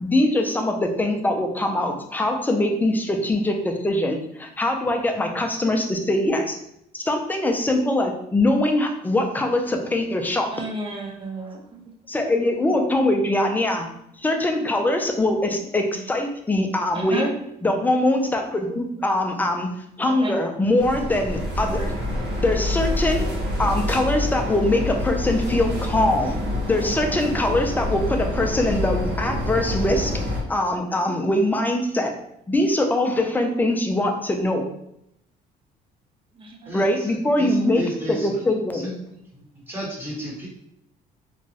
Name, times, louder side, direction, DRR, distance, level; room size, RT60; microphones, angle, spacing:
voice 1, 0.0-6.5 6.9-10.5 12.1-13.9 14.2-17.3 17.6-19.7 20.0-21.9 22.4-23.3 23.6-26.4 26.7-30.1 30.5-32.1 32.5-34.6 36.7-37.8 38.1-38.9, left 1 dB, 10° left, 3 dB, 0.4 m, -22 dB
voice 2, 10.5-11.8 12.9-13.0 15.9-16.0 16.9-17.4 18.7-19.1 20.1-20.3 21.6-21.9 36.4-37.0 39.1-39.8 40.3-40.5, right 2 dB, 30° right, 1 dB, 0.7 m, -34 dB
sound 1, 20.8-30.4, left 1 dB, 85° right, 1.1 m, -26 dB
voice 3, 36.7-38.4 38.7-38.8 39.7-40.5, right 1 dB, 10° right, -4 dB, 1.1 m, -33 dB
3.0 x 2.2 x 2.7 m, 0.77 s
cardioid pair, 110°, 17 cm